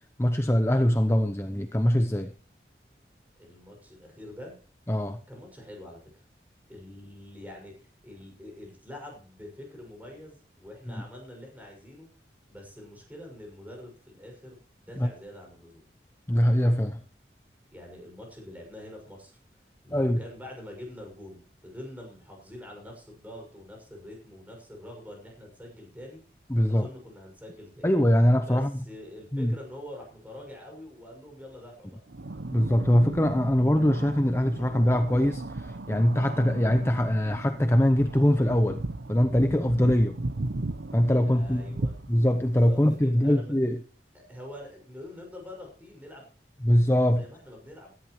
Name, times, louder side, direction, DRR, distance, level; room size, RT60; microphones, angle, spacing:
voice 1, 0.2-2.3 4.9-5.2 15.0-15.1 16.3-17.0 19.9-20.2 26.5-26.9 27.8-28.7 29.3-29.5 32.5-38.8 39.1-40.2 40.9-41.8 42.1-43.8 46.6-47.3, equal, 15° left, 8 dB, 0.7 m, -23 dB
voice 2, 3.4-4.5 5.3-6.2 6.7-12.1 12.5-15.9 17.7-19.4 19.8-26.2 26.7-27.9 28.4-32.0 41.0-42.0 42.5-43.5 44.1-46.2 47.1-47.9, left 1 dB, 10° right, 1 dB, 6.1 m, -45 dB
sound 1, 32.1-43.0, right 2 dB, 80° right, 0.8 m, -36 dB
17.0 x 13.5 x 3.2 m, 0.39 s
head